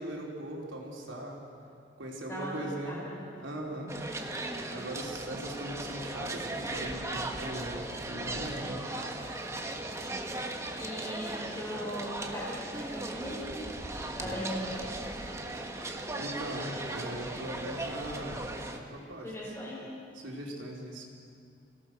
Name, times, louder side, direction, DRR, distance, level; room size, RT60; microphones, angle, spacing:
voice 1, 0.0-1.4 2.0-3.0 3.4-3.9 4.7-7.8 8.1-8.8 14.2-14.4 16.2-18.5 18.7-19.3 20.2-21.1, right 1 dB, 85° right, -1 dB, 4.0 m, -39 dB
voice 2, 2.3-3.3 10.1-10.4 10.8-13.6 14.2-15.0 19.2-19.9, equal, 15° left, -5 dB, 4.9 m, -39 dB
sound 1, 3.9-18.8, right 2 dB, 15° right, 1.3 m, -37 dB
27.0 x 17.5 x 6.4 m, 2.4 s
head